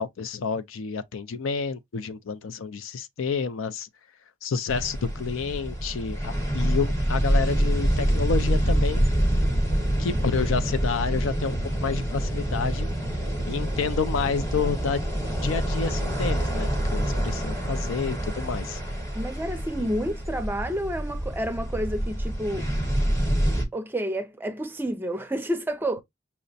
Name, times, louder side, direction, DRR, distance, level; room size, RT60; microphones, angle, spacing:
voice 1, 0.0-3.9 4.4-9.0 10.0-12.9 13.5-15.0 15.4-18.8 19.8-19.9, left 5 dB, 80° left, 0.4 m, -29 dB
sound 1, 4.7-23.7, right 1 dB, 15° left, 1.0 m, -26 dB
voice 2, 19.1-22.7 23.7-26.0, equal, 10° right, 0.4 m, -29 dB
5.6 x 2.1 x 2.5 m
head